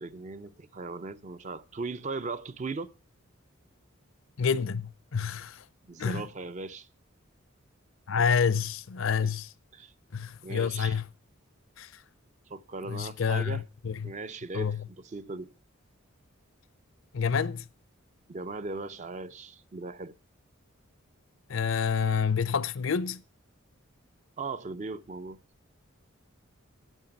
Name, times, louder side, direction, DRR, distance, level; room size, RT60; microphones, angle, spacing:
voice 1, 0.0-2.9 5.9-6.9 9.2-9.3 9.7-9.9 10.4-11.0 12.5-13.6 14.0-15.5 18.3-20.2 24.4-25.4, right 3 dB, 35° right, 0.4 m, -38 dB
voice 2, 4.4-5.6 6.0-6.3 8.1-9.5 10.1-11.1 11.8-12.0 12.8-14.1 14.5-14.8 17.1-17.6 21.5-23.2, left 6 dB, 65° left, 0.5 m, -28 dB
9.0 x 8.5 x 5.7 m
head